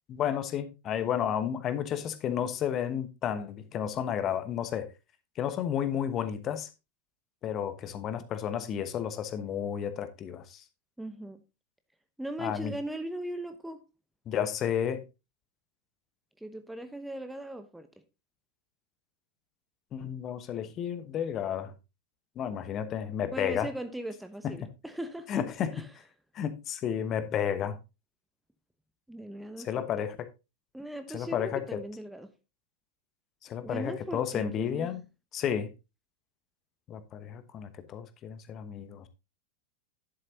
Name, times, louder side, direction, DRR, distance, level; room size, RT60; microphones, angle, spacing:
voice 1, 0.1-4.9 5.4-6.7 7.4-10.6 12.4-12.8 14.3-15.0 19.9-21.7 22.4-23.7 24.4-24.5 25.3-25.8 26.3-27.8 29.6-30.3 31.1-31.8 33.4-35.0 35.3-35.7 36.9-39.1, left 9 dB, 30° left, 1.0 m, -32 dB
voice 2, 11.0-11.4 12.2-13.8 16.4-17.9 23.3-25.4 25.7-25.9 29.1-29.9 30.7-32.3 33.6-35.0, right 1 dB, 5° right, 0.8 m, -39 dB
11.0 x 7.6 x 2.8 m
figure-of-eight pair, 90°, 0 cm